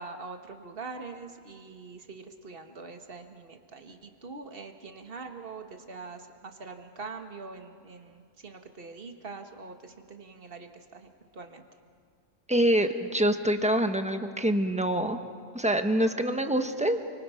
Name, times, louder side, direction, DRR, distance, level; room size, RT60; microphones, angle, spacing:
voice 1, 0.0-11.6, right 4 dB, 45° right, 5 dB, 1.9 m, -43 dB
voice 2, 12.5-15.2 15.5-17.0, right 1 dB, 5° right, 7 dB, 1.2 m, -25 dB
29.5 x 25.0 x 5.8 m, 2.1 s
omnidirectional pair, 1.4 m